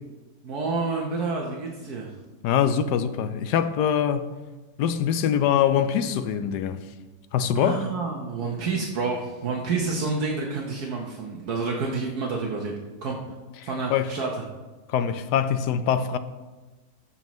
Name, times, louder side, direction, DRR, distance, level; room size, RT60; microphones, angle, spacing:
voice 1, 0.4-2.1 7.6-13.2 13.6-14.3, right 4 dB, 70° right, 1.5 m, -29 dB
voice 2, 2.4-4.3 4.8-6.8 7.3-7.9 13.6-14.1 14.9-16.2, left 8 dB, 85° left, 1.2 m, -23 dB
14.5 x 7.2 x 3.1 m
omnidirectional pair, 1.7 m